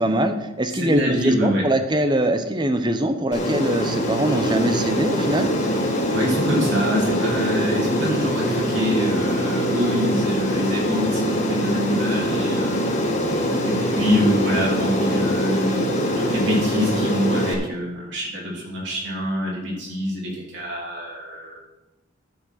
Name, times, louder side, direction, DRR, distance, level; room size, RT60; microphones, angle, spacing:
voice 1, 0.0-5.5, right 1 dB, 25° right, 8 dB, 0.8 m, -22 dB
voice 2, 0.7-1.6 6.0-12.8 13.6-15.9 16.1-21.6, equal, 65° right, -4 dB, 2.9 m, -25 dB
Aircraft, 3.3-17.5, equal, 35° left, 1.8 m, -23 dB
12.5 x 5.7 x 5.8 m, 0.97 s
head